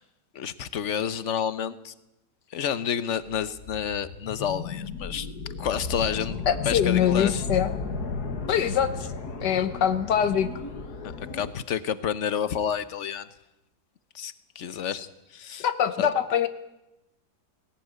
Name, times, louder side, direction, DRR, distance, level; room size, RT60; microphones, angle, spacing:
voice 1, 0.3-1.9 2.5-5.3 5.6-6.4 6.7-7.4 11.2-13.3 14.1-15.0 15.3-15.7 16.0-16.1, left 8 dB, 50° left, 14 dB, 1.2 m, -29 dB
sound 1, 3.5-11.5, left 4 dB, 70° left, 2.2 m, -34 dB
voice 2, 6.5-7.8 8.5-9.1 9.4-10.5 14.9-15.1 15.6-16.5, left 9 dB, 85° left, 11 dB, 1.7 m, -24 dB
18.5 x 17.5 x 9.4 m, 0.93 s
omnidirectional pair, 1.8 m